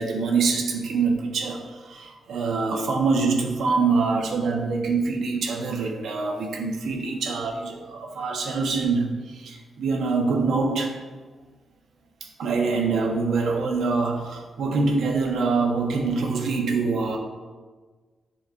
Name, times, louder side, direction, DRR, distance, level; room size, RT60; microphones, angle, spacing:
voice 1, 0.0-10.9 12.4-17.2, right 4 dB, 80° right, 0 dB, 1.1 m, -25 dB
11.0 x 4.3 x 2.6 m, 1.4 s
cardioid pair, 105°, 0 cm